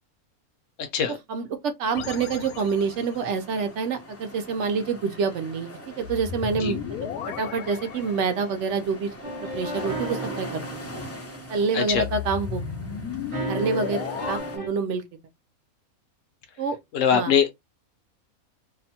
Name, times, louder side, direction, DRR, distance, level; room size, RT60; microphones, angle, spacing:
voice 1, 1.1-6.8 7.2-9.1 9.5-10.7 11.5-12.6 13.5-15.0 16.6-16.8 17.1-17.3, right 5 dB, 65° right, 0.8 m, -27 dB
sound 1, 1.9-3.3 6.0-8.7 11.9-14.4, left 7 dB, 85° left, 1.1 m, -34 dB
sound 2, 1.9-14.6, left 1 dB, 25° left, 0.3 m, -42 dB
sound 3, 9.2-12.4 13.3-14.7, right 2 dB, 40° right, 0.5 m, -35 dB
voice 2, 16.9-17.5, left 7 dB, 65° left, 0.9 m, -22 dB
2.7 x 2.1 x 2.7 m
omnidirectional pair, 1.5 m